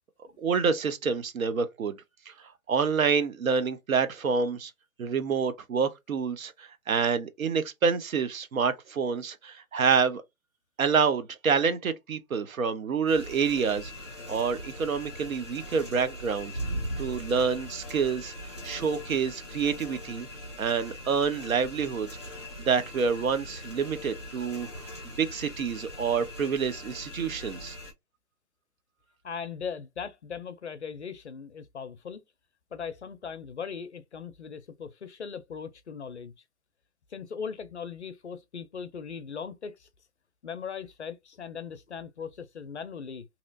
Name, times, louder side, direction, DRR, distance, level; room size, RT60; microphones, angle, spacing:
voice 1, 0.4-2.0 2.3-2.4 2.7-4.7 5.0-10.2 10.8-13.9 14.3-16.5 17.0-18.3 18.6-20.3 20.6-22.1 22.6-24.7 25.2-27.8, right 6 dB, 60° right, 0.8 m, -27 dB
sound 1, 13.1-27.9, equal, 20° right, 0.5 m, -40 dB
voice 2, 29.2-32.2 32.7-36.3 37.1-39.9 40.4-43.3, left 6 dB, 50° left, 0.5 m, -39 dB
3.0 x 2.8 x 2.5 m
hypercardioid pair, 155°, 46 cm